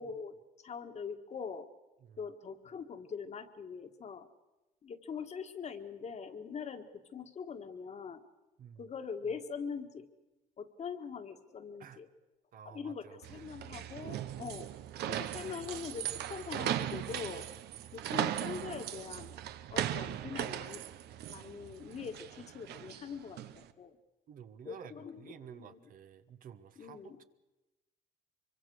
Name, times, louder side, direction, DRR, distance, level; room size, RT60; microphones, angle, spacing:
voice 1, 0.0-1.7 2.2-4.3 4.8-8.2 8.8-10.1 10.6-12.1 12.6-14.7 15.1-17.5 17.9-19.3 19.7-20.8 21.3-24.0 24.6-25.3 25.6-25.8 26.8-27.2, left 6 dB, 40° left, 7 dB, 1.7 m, -43 dB
voice 2, 12.5-13.4 15.5-15.6 24.3-27.2, right 8 dB, 55° right, 10 dB, 1.2 m, -52 dB
sound 1, 13.2-23.6, right 11 dB, 75° right, 1.0 m, -38 dB
24.0 x 23.5 x 6.4 m, 1.0 s
cardioid pair, 110°, 17 cm